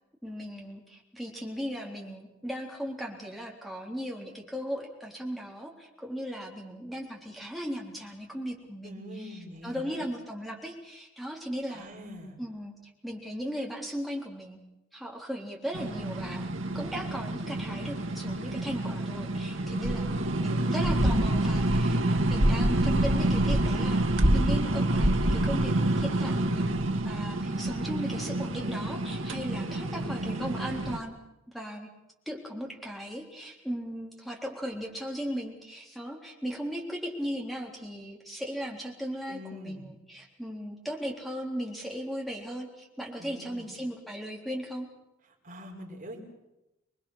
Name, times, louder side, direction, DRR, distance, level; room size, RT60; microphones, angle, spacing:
voice 1, 0.2-11.9 12.4-12.7 13.0-14.6 14.9-16.4 16.7-20.1 20.4-24.0 24.3-26.8 27.0-31.1 31.5-31.9 32.3-44.9, equal, ahead, 0 dB, 3.7 m, -37 dB
voice 2, 8.8-10.0 11.7-12.4 19.8-20.4 29.3-30.4 39.3-39.9 43.2-43.7 45.4-46.2, equal, 40° right, 1 dB, 4.8 m, -44 dB
sound 1, 15.7-31.0, right 1 dB, 75° right, 1.9 m, -27 dB
26.0 x 22.0 x 6.5 m, 0.94 s
head